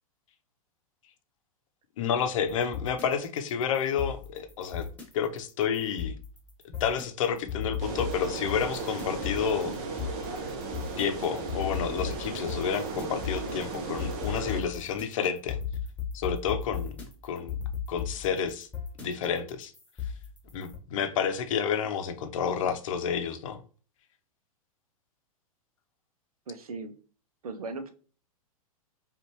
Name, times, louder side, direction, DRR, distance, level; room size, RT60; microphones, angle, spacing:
voice 1, 2.0-4.9 5.1-6.2 6.8-9.7 11.0-15.6 16.1-16.9 17.2-17.6 17.9-18.7 19.0-19.7 20.5-23.6, left 7 dB, 60° left, 0.7 m, -30 dB
sound 1, 2.4-20.8, left 7 dB, 5° left, 1.4 m, -37 dB
sound 2, 7.8-14.6, right 3 dB, 40° right, 1.0 m, -36 dB
voice 2, 26.5-26.9 27.4-27.9, right 3 dB, 75° right, 0.7 m, -37 dB
5.2 x 2.5 x 3.0 m
figure-of-eight pair, 105°, 19 cm